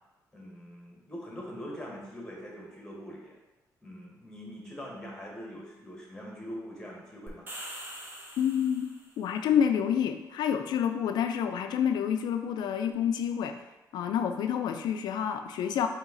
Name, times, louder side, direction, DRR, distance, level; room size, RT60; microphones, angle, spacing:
voice 1, 0.3-3.4 3.8-7.5, equal, 10° left, -2 dB, 1.2 m, -43 dB
sound 1, 7.3-9.2, right 1 dB, 30° right, 0.9 m, -43 dB
voice 2, 8.4-8.9 9.2-13.5 13.9-15.9, left 8 dB, 80° left, 7 dB, 0.3 m, -28 dB
4.0 x 2.9 x 3.7 m, 1.1 s
cardioid pair, 95°, 7 cm